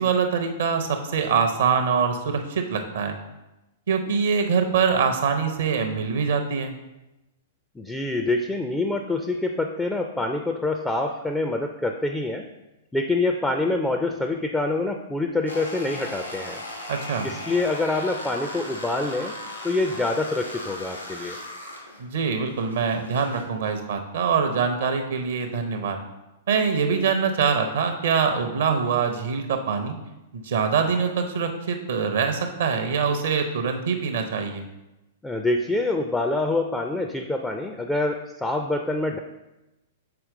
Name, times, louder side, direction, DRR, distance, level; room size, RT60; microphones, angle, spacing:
voice 1, 0.0-3.1 3.9-6.7 16.9-17.3 22.0-26.0 26.5-30.0 30.3-34.6, right 6 dB, 60° right, 5 dB, 0.6 m, -24 dB
voice 2, 7.8-12.5 12.9-16.6 17.2-19.3 19.6-21.4 35.2-39.2, left 2 dB, 5° left, 4 dB, 0.4 m, -26 dB
sound 1, 15.5-23.4, left 1 dB, 90° left, 1.3 m, -37 dB
6.7 x 4.4 x 3.7 m, 0.98 s
figure-of-eight pair, 105°, 0 cm